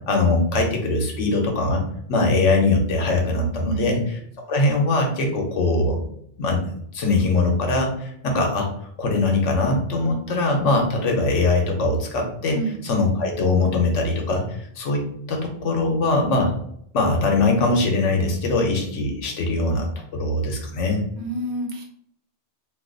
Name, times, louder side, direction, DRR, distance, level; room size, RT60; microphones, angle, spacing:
voice 1, 0.1-1.8 2.1-4.0 4.5-6.0 6.4-6.6 6.9-8.7 9.0-12.6 12.8-15.0 15.3-16.5 16.9-21.0, left 2 dB, 85° left, 2 dB, 1.1 m, -21 dB
voice 2, 3.6-4.1 12.5-12.8 21.2-21.8, right 2 dB, 70° right, 1 dB, 1.0 m, -29 dB
2.6 x 2.4 x 3.8 m, 0.69 s
omnidirectional pair, 1.2 m